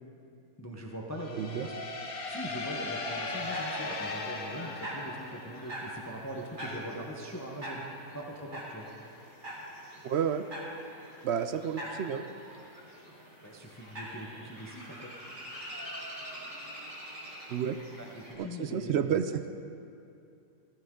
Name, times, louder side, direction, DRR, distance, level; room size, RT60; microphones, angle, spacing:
voice 1, 0.6-1.8 2.3-7.9 8.1-8.9 13.4-15.1 18.0-19.2, equal, 15° left, 0 dB, 0.8 m, -41 dB
sound 1, 1.2-5.9, left 2 dB, 75° left, 1.7 m, -37 dB
voice 2, 1.4-1.7 10.0-10.4 11.2-12.2 17.5-17.8 18.3-19.4, right 8 dB, 65° right, 9 dB, 0.6 m, -30 dB
sound 2, 3.2-18.3, equal, 35° right, 2.3 m, -44 dB
15.0 x 13.0 x 3.8 m, 2.6 s
omnidirectional pair, 1.6 m